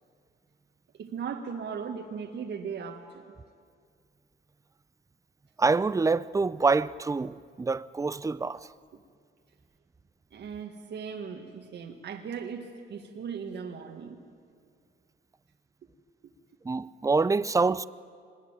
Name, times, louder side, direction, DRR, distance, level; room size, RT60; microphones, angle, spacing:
voice 1, 0.9-3.2 8.9-9.0 10.3-14.3 16.2-16.3, right 6 dB, 60° right, 1.8 m, -38 dB
voice 2, 5.6-8.7 16.6-17.9, right 4 dB, 15° right, 0.6 m, -26 dB
25.0 x 21.0 x 8.9 m
cardioid pair, 90°, 20 cm